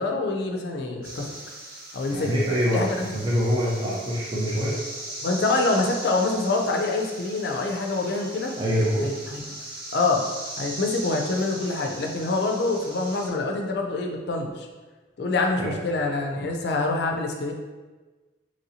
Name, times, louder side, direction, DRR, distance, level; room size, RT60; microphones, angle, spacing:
voice 1, 0.0-1.3 1.9-2.3 2.7-2.9 5.2-8.6 9.0-9.4 9.9-10.2 10.6-14.7 15.2-17.5, left 3 dB, 60° left, 2 dB, 0.4 m, -25 dB
sound 1, 1.0-13.3, right 1 dB, 50° right, 0.8 m, -39 dB
voice 2, 2.1-4.8 8.6-9.1 15.6-15.7, equal, 25° right, -7 dB, 0.5 m, -25 dB
3.0 x 2.7 x 2.8 m, 1.3 s
head